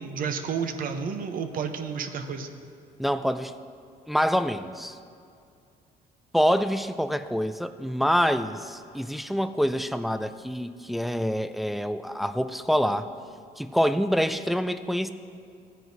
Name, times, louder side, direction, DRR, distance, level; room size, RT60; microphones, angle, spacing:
voice 1, 0.0-2.5, right 6 dB, 55° right, 7 dB, 0.8 m, -31 dB
voice 2, 3.0-3.5 4.1-5.0 6.3-13.1 13.6-15.1, equal, ahead, 11 dB, 0.3 m, -26 dB
15.5 x 9.4 x 2.7 m, 2.3 s
cardioid pair, 110°, 17 cm